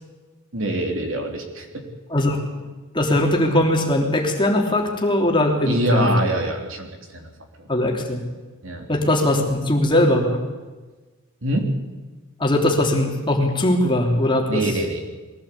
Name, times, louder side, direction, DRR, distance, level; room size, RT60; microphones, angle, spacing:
voice 1, 0.5-1.7 5.7-7.3 7.6-7.7 8.6-8.8 11.4-11.7 14.5-15.0, right 1 dB, 60° right, 3 dB, 3.5 m, -24 dB
voice 2, 2.9-6.1 7.7-8.2 8.9-10.4 12.4-14.6, left 1 dB, 20° left, 0 dB, 3.3 m, -20 dB
22.0 x 16.5 x 8.5 m, 1.3 s
head